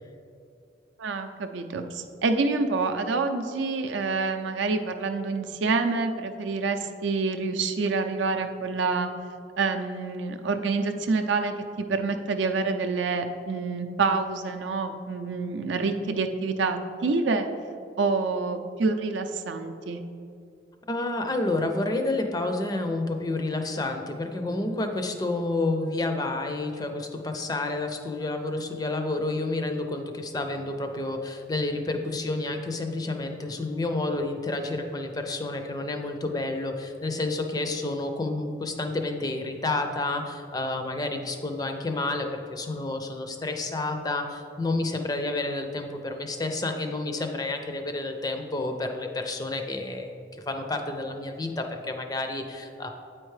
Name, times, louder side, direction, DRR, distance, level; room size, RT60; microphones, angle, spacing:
voice 1, 1.0-9.1 9.6-17.5 18.0-20.0, right 4 dB, 80° right, 6 dB, 0.5 m, -27 dB
voice 2, 20.9-52.9, left 2 dB, 20° left, 5 dB, 0.4 m, -30 dB
8.7 x 4.4 x 3.2 m, 2.5 s
head